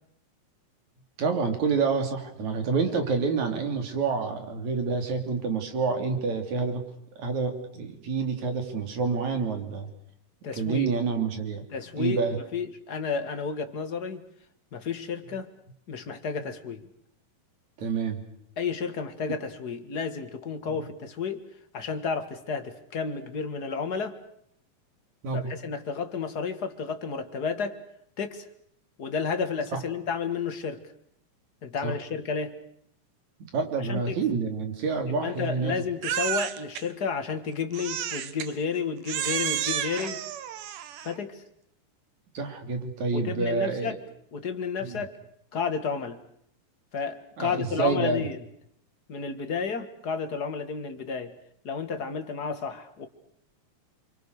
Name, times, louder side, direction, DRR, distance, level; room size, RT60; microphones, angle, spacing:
voice 1, 1.2-6.8 7.2-9.9 10.5-11.6 12.0-12.4 17.8-18.2 19.3-19.4 20.7-20.8 25.2-25.5 29.7-29.8 31.8-31.9 33.5-35.7 42.3-44.0 44.8-45.0 47.4-48.2, right 5 dB, 60° right, 6 dB, 4.3 m, -28 dB
voice 2, 10.4-10.9 11.7-14.3 14.7-15.5 15.9-16.9 18.6-21.4 21.7-24.2 25.3-27.8 28.2-28.5 29.0-30.8 31.6-32.6 33.8-34.2 35.1-40.2 41.0-41.4 43.1-44.0 44.3-45.2 45.5-46.2 46.9-48.4 49.1-51.3 51.6-53.1, left 5 dB, 40° left, 8 dB, 1.7 m, -31 dB
Crying sobbing, 36.0-36.8 37.7-38.5 39.1-41.2, right 10 dB, 75° right, 2.8 m, -31 dB
29.0 x 24.0 x 6.6 m, 0.71 s
omnidirectional pair, 3.9 m